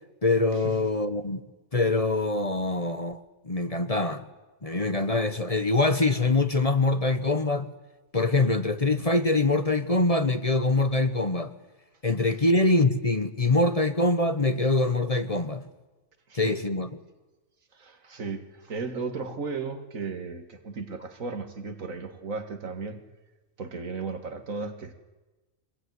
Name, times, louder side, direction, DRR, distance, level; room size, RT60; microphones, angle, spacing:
voice 1, 0.2-1.4 1.7-3.2 3.4-4.2 4.6-7.7 8.1-11.5 12.0-15.6 16.3-16.9, left 2 dB, 30° left, 1.1 m, -24 dB
voice 2, 17.7-23.0 23.6-24.9, right 4 dB, 85° right, 2.3 m, -35 dB
23.5 x 20.5 x 9.5 m
omnidirectional pair, 1.4 m